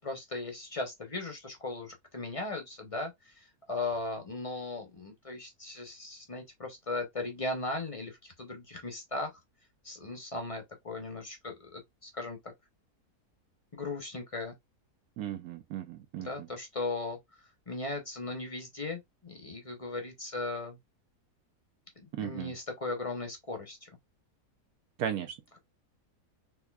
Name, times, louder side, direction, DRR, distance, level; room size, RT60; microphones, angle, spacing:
voice 1, 0.0-9.4 9.8-12.4 13.7-14.5 16.2-20.8 22.0-23.9, left 2 dB, 35° left, 0.5 m, -38 dB
voice 2, 15.2-16.5 22.1-22.5 25.0-25.3, right 10 dB, 75° right, 1.1 m, -36 dB
4.1 x 3.3 x 2.3 m
omnidirectional pair, 1.7 m